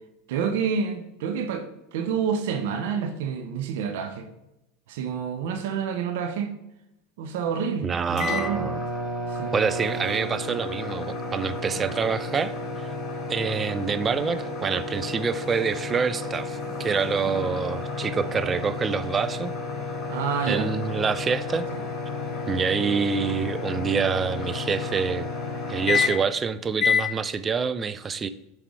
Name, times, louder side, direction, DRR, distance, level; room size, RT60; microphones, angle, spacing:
voice 1, 0.3-1.6 1.9-4.3 4.9-6.5 7.2-8.7 9.4-9.5 20.1-20.7 21.7-21.8, right 6 dB, 70° right, 7 dB, 0.8 m, -28 dB
voice 2, 7.8-8.8 9.5-12.5 13.3-19.5 20.5-21.7 22.5-25.3 25.7-28.3, right 5 dB, 25° right, 13 dB, 0.4 m, -26 dB
sound 1, 8.2-26.4 26.8-27.1, left 4 dB, 40° left, 1.6 m, -31 dB
7.3 x 3.4 x 4.8 m, 0.91 s
hypercardioid pair, 95°, 0 cm